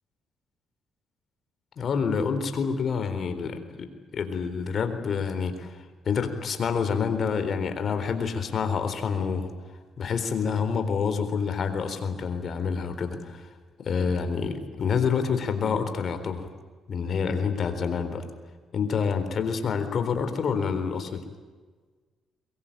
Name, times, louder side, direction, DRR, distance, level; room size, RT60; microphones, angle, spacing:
voice 1, 1.8-3.9 4.1-9.5 10.0-13.5 13.8-16.5 16.9-18.3 18.7-21.2, left 6 dB, 55° left, 8 dB, 3.9 m, -27 dB
23.0 x 22.5 x 9.0 m, 1.4 s
cardioid pair, 90°, 0 cm